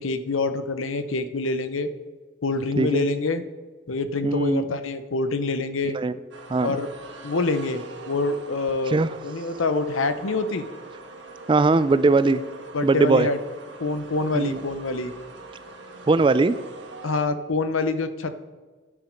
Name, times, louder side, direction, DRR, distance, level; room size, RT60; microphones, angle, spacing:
voice 1, 0.0-1.9 2.4-3.4 3.9-6.0 6.6-6.9 7.2-10.7 12.7-13.4 13.8-15.1 17.0-18.4, left 3 dB, 85° left, 11 dB, 0.8 m, -26 dB
voice 2, 4.2-4.7 5.9-6.1 6.5-6.8 8.9-9.1 11.5-12.4 12.8-13.3 14.3-14.6 16.1-16.6, right 3 dB, 25° right, 15 dB, 0.3 m, -20 dB
sound 1, 6.3-17.2, right 3 dB, 60° right, 1.4 m, -42 dB
10.5 x 8.4 x 5.2 m, 1.3 s
head